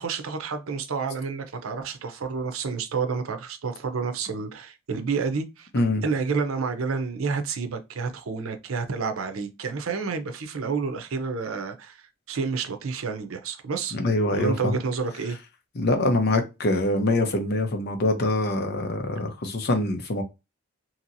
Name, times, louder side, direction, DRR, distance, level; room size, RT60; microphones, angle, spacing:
voice 1, 0.0-5.7 6.0-14.0 14.3-15.4, right 5 dB, 90° right, 0.6 m, -29 dB
voice 2, 13.9-14.7 15.8-20.2, left 2 dB, 50° left, 0.7 m, -24 dB
2.9 x 2.8 x 2.6 m
head